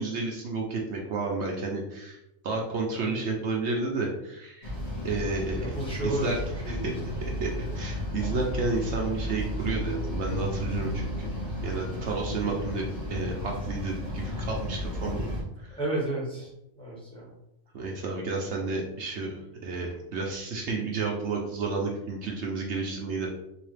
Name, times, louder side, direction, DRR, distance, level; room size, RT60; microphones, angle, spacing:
voice 1, 0.0-2.2 2.4-4.7 5.0-5.7 6.0-6.4 6.7-6.9 7.4-7.5 7.7-11.3 11.6-12.8 13.1-15.3 15.6-15.8 17.7-23.3, right 3 dB, 65° right, -1 dB, 0.9 m, -31 dB
sound 1, 4.6-15.4, left 1 dB, 30° left, 1.4 m, -33 dB
voice 2, 5.6-6.3 6.6-6.9 15.8-16.5 16.8-17.3 18.2-18.7, right 1 dB, 5° left, -5 dB, 1.1 m, -32 dB
3.9 x 2.8 x 3.2 m, 0.84 s
omnidirectional pair, 1.3 m